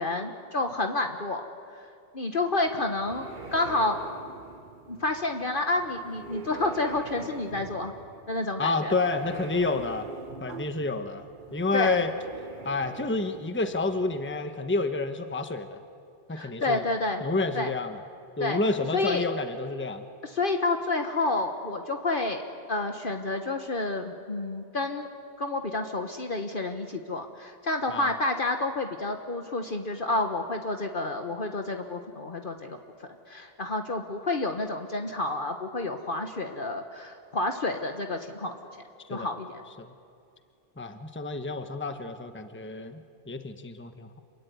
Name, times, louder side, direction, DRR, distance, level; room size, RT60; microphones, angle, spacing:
voice 1, 0.0-1.4 2.1-4.0 4.9-7.9 8.3-8.9 11.7-12.0 16.3-17.2 17.5-17.7 18.4-18.6 18.9-19.2 20.2-22.4 22.7-25.1 25.4-38.5 39.1-39.6, left 2 dB, 50° left, 5 dB, 1.4 m, -29 dB
sound 1, 2.6-14.4, right 4 dB, 45° right, 1.5 m, -44 dB
voice 2, 8.6-10.1 10.4-12.1 12.6-15.8 16.3-16.8 17.2-18.0 18.4-20.1 27.9-28.1 39.1-39.3 39.8-39.9 40.8-44.2, left 3 dB, 10° left, 8 dB, 1.1 m, -29 dB
27.0 x 23.0 x 9.4 m, 2.5 s
omnidirectional pair, 1.1 m